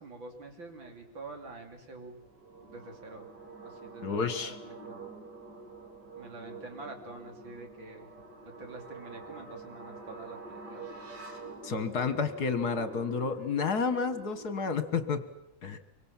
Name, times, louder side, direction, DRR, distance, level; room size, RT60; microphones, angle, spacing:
voice 1, 0.0-2.2 2.6-3.3 3.6-5.0 6.2-8.1 8.6-10.9, right 3 dB, 75° right, 4 dB, 3.9 m, -47 dB
sound 1, 2.2-15.3, right 3 dB, 60° right, 3.8 m, -47 dB
voice 2, 4.0-4.6 11.6-15.2 15.6-15.8, left 5 dB, 55° left, 11 dB, 1.9 m, -30 dB
25.0 x 24.5 x 7.4 m, 0.82 s
omnidirectional pair, 2.1 m